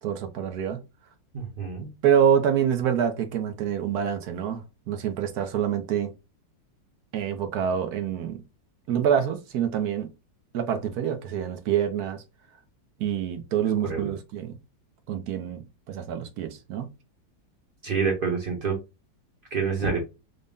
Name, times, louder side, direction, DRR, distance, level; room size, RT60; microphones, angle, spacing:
voice 1, 0.0-0.8 2.0-4.6 4.9-6.1 7.1-8.4 8.9-10.1 10.5-12.2 13.0-14.6 15.1-16.9, right 8 dB, 65° right, 1.1 m, -26 dB
voice 2, 1.3-1.9 13.9-14.1 17.8-18.8 19.5-20.0, right 5 dB, 35° right, 0.9 m, -27 dB
3.9 x 2.1 x 3.5 m
omnidirectional pair, 2.0 m